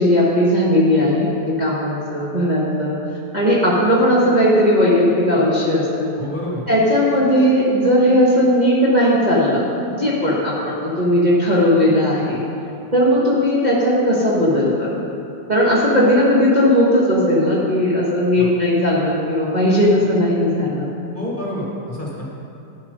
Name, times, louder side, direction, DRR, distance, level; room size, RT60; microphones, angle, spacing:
voice 1, 0.0-3.0 3.3-6.1 6.7-9.6 9.9-12.4 12.9-14.9 15.5-20.9, equal, 25° right, -7 dB, 1.4 m, -17 dB
voice 2, 6.2-6.6 18.4-18.5 21.1-22.3, left 1 dB, 30° left, -5 dB, 1.7 m, -28 dB
11.5 x 7.5 x 5.2 m, 2.6 s
omnidirectional pair, 2.0 m